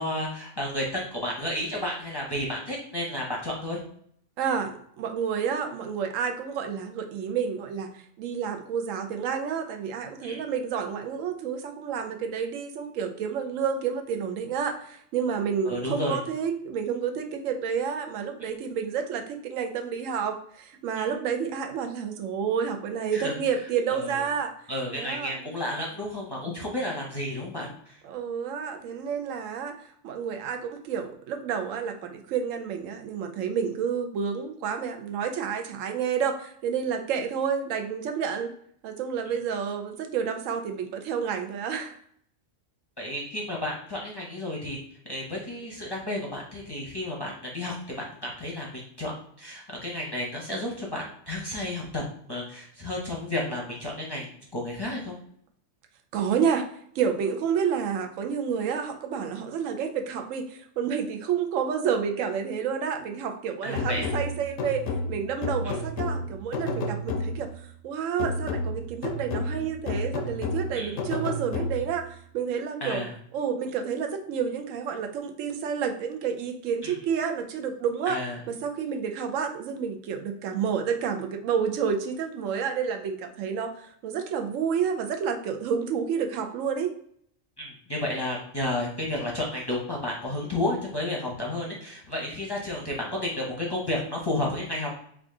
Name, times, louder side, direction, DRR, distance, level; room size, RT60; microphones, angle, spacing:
voice 1, 0.0-3.8 10.2-10.4 15.6-16.2 21.0-21.1 23.1-23.3 23.9-24.2 24.7-28.0 43.0-44.8 45.0-52.0 52.3-55.2 63.6-64.2 65.6-65.8 70.7-70.9 72.8-73.1 76.8-77.0 78.1-78.4 87.6-95.0, left 1 dB, 25° left, -3 dB, 0.6 m, -32 dB
voice 2, 4.4-24.5 24.9-25.4 28.0-38.5 38.8-42.0 56.1-56.7 56.9-64.8 65.1-72.1 72.3-73.0 73.3-78.2 78.5-86.9, right 7 dB, 90° right, 5 dB, 1.0 m, -29 dB
sound 1, 63.8-67.6 68.2-72.1, left 2 dB, 80° left, 0.9 m, -31 dB
3.5 x 2.4 x 3.7 m, 0.66 s
omnidirectional pair, 1.3 m